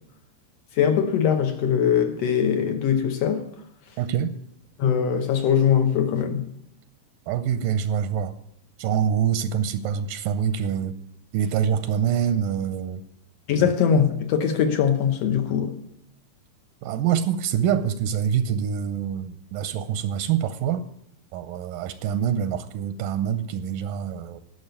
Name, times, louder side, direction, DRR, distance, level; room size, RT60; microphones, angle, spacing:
voice 1, 0.8-3.5 4.8-6.4 13.5-15.7, left 8 dB, 70° left, 1.6 m, -21 dB
voice 2, 4.0-4.4 7.3-8.3 8.8-11.0 11.3-13.0 13.6-13.7 16.8-20.8 21.3-24.4, right 8 dB, 85° right, 2.2 m, -25 dB
12.0 x 6.4 x 9.1 m
omnidirectional pair, 3.9 m